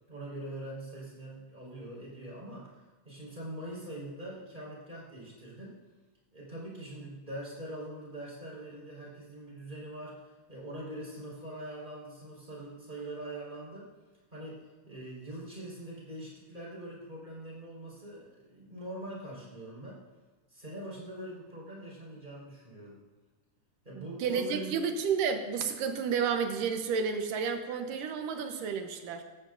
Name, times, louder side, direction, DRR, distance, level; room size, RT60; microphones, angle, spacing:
voice 1, 0.1-5.8 6.3-13.9 14.3-20.0 20.5-23.0 23.8-24.7, right 1 dB, 15° right, -6 dB, 4.9 m, -43 dB
voice 2, 23.9-29.2, right 6 dB, 85° right, 5 dB, 2.7 m, -31 dB
17.0 x 15.0 x 2.6 m, 1.3 s
omnidirectional pair, 3.7 m